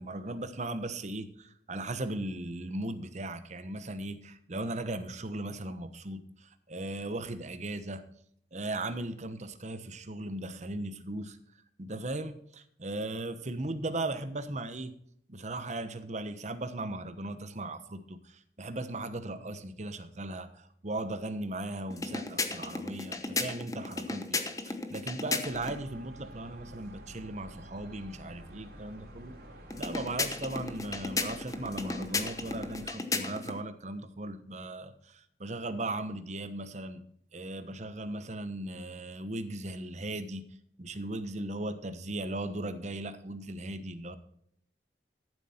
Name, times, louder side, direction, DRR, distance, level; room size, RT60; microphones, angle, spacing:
voice 1, 0.0-8.0 8.5-11.4 11.8-14.9 15.3-29.4 29.8-37.0 37.3-44.2, right 2 dB, 40° right, 10 dB, 1.0 m, -37 dB
sound 1, 21.9-25.8 29.7-33.6, left 3 dB, 20° left, 1.0 m, -35 dB
sound 2, 25.5-32.9, equal, 60° right, 3.7 m, -49 dB
13.5 x 7.7 x 4.3 m, 0.67 s
head